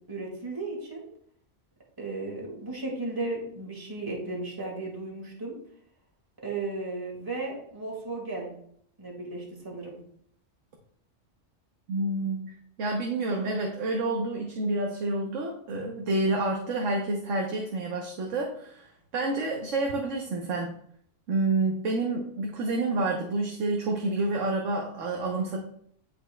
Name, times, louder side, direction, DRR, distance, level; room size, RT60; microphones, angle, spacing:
voice 1, 0.1-1.1 2.0-5.5 6.4-8.5 9.0-10.0, right 2 dB, 15° right, -2 dB, 1.8 m, -35 dB
voice 2, 11.9-20.7 21.3-25.6, right 2 dB, 90° right, 1 dB, 1.2 m, -29 dB
10.5 x 4.3 x 2.2 m, 0.65 s
omnidirectional pair, 1.3 m